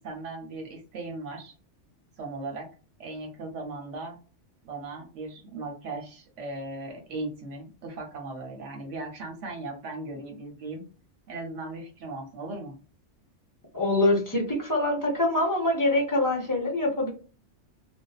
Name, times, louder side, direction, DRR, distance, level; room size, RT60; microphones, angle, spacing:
voice 1, 0.0-1.5 2.2-2.7 3.0-4.2 4.6-10.8 11.3-12.8, right 2 dB, 80° right, 1 dB, 1.0 m, -37 dB
voice 2, 13.7-17.1, left 2 dB, 30° left, 0 dB, 0.4 m, -24 dB
2.5 x 2.1 x 2.3 m, 0.37 s
omnidirectional pair, 1.2 m